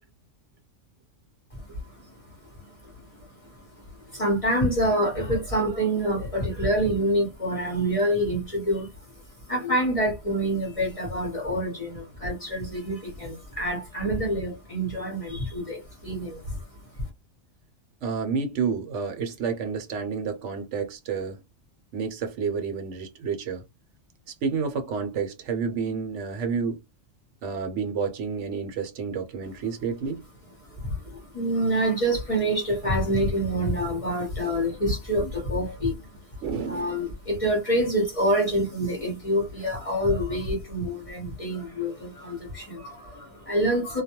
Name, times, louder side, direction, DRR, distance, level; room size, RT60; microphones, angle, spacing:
voice 1, 1.5-17.0 30.6-44.0, right 1 dB, 30° left, 0.8 m, -27 dB
voice 2, 18.0-21.4 21.9-23.6 24.3-26.8 27.4-30.2 36.4-37.0, right 5 dB, 70° right, 0.9 m, -30 dB
2.3 x 2.2 x 2.8 m
omnidirectional pair, 1.3 m